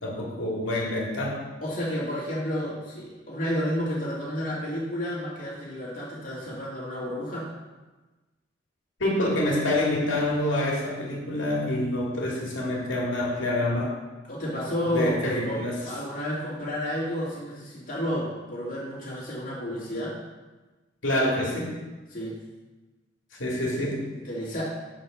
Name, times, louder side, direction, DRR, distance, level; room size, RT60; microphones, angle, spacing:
voice 1, 0.0-1.4 9.0-13.9 14.8-15.8 21.0-21.7 23.4-24.0, left 1 dB, 80° left, -3 dB, 2.1 m, -27 dB
voice 2, 1.6-7.5 14.3-20.2 22.1-22.4 23.6-24.6, equal, 45° left, -6 dB, 2.5 m, -31 dB
5.8 x 5.2 x 6.2 m, 1.2 s
head